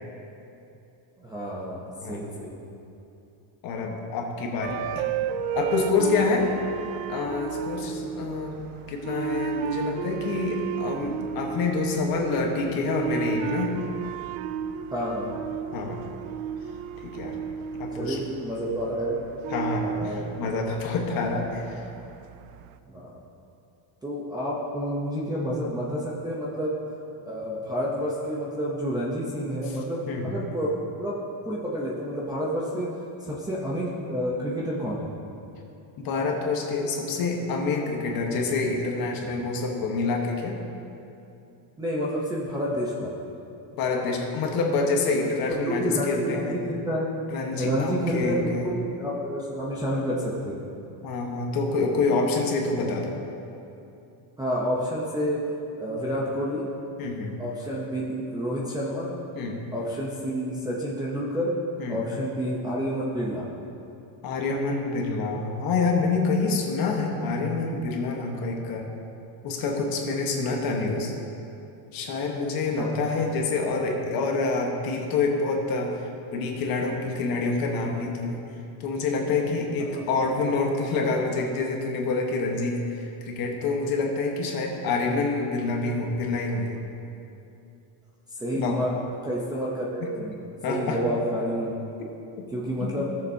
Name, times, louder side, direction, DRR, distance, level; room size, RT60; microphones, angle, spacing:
voice 1, 1.2-2.6 14.9-15.4 17.9-19.2 19.8-20.3 22.9-23.2 24.0-26.8 27.3-31.2 31.5-32.9 33.2-35.1 41.8-43.1 45.5-47.1 47.6-50.6 54.4-55.4 55.8-56.7 57.4-59.1 59.7-61.5 61.9-63.5 72.8-73.0 79.9-80.0 88.3-88.9 89.2-90.3 90.7-91.7 92.5-93.1, equal, 10° right, -6 dB, 0.6 m, -29 dB
voice 2, 3.6-5.1 5.5-6.5 7.1-8.6 8.9-13.7 15.7-16.0 17.0-17.4 17.8-18.2 19.5-21.8 30.1-30.3 36.0-40.6 43.8-46.6 47.3-48.7 51.0-53.1 57.0-57.3 59.3-59.6 61.8-62.0 64.2-68.8 69.4-71.1 71.9-75.9 76.3-78.4 78.8-86.8 88.5-88.8 90.0-90.1 90.6-91.0 92.8-92.9, left 3 dB, 45° left, 1 dB, 1.2 m, -27 dB
sound 1, 4.6-22.7, right 8 dB, 80° right, 0.5 m, -33 dB
16.5 x 6.9 x 2.7 m, 2.8 s
cardioid pair, 170°, 50 cm